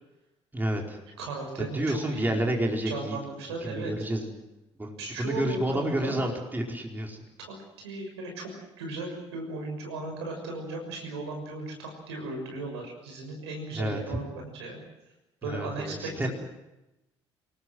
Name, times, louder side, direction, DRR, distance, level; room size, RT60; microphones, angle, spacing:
voice 1, 0.5-1.0 1.6-3.2 3.6-4.3 4.8-7.2 13.7-14.2 15.4-16.3, right 1 dB, 15° right, 2 dB, 4.8 m, -30 dB
voice 2, 1.2-2.4 2.8-3.9 5.0-6.2 7.4-8.5 8.8-14.8 15.4-16.3, right 3 dB, 75° right, 2 dB, 6.3 m, -36 dB
28.0 x 19.0 x 7.9 m, 0.97 s
figure-of-eight pair, 50°, 14 cm